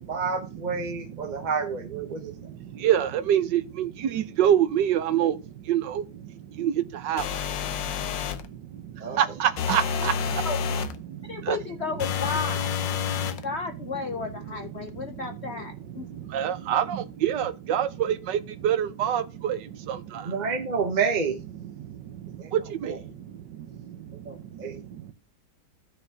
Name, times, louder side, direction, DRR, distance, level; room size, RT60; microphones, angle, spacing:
voice 1, 0.1-2.3 9.0-9.2 20.2-21.4 22.4-22.5 24.2-24.8, right 5 dB, 35° right, 0.7 m, -29 dB
voice 2, 2.1-10.5 11.0-11.6 12.9-13.5 14.2-20.4 21.8-25.1, right 10 dB, 75° right, 1.5 m, -28 dB
sound 1, 7.2-8.5 9.6-11.0 12.0-13.4, left 7 dB, 85° left, 1.5 m, -29 dB
voice 3, 11.3-12.7 13.4-16.1, left 4 dB, 55° left, 0.7 m, -33 dB
15.0 x 6.5 x 2.7 m
omnidirectional pair, 1.9 m